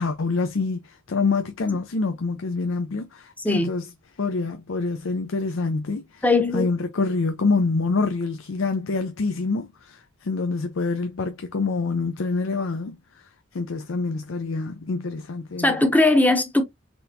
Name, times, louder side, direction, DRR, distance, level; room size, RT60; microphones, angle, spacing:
voice 1, 0.0-3.9 4.2-6.2 6.5-13.0 13.5-15.7, left 3 dB, 80° left, 0.5 m, -26 dB
voice 2, 3.4-3.7 6.2-6.7 15.6-16.6, left 2 dB, 10° left, 0.7 m, -19 dB
4.2 x 3.4 x 2.6 m
head